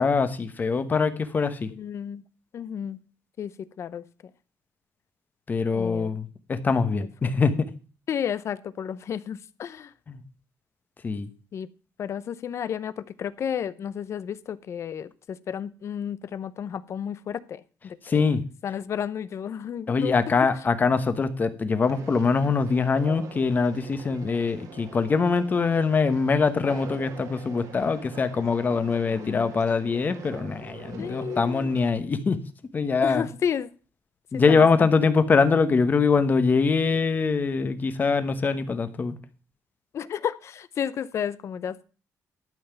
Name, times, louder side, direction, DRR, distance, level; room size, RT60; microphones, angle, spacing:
voice 1, 0.0-1.7 5.5-7.7 10.1-10.2 11.0-11.3 18.0-18.4 19.9-32.4 32.7-33.3 34.3-39.1, left 4 dB, 30° left, 1.1 m, -23 dB
voice 2, 1.7-2.2 2.5-3.0 3.4-4.0 5.7-6.1 8.1-9.9 11.5-11.7 12.0-18.2 18.6-20.2 29.1-29.5 31.0-31.7 33.0-33.7 34.3-34.9 39.9-41.8, left 8 dB, 45° left, 0.7 m, -32 dB
Conversation, 21.9-31.9, right 7 dB, 65° right, 1.8 m, -44 dB
12.5 x 5.6 x 6.9 m
cardioid pair, 145°, 6 cm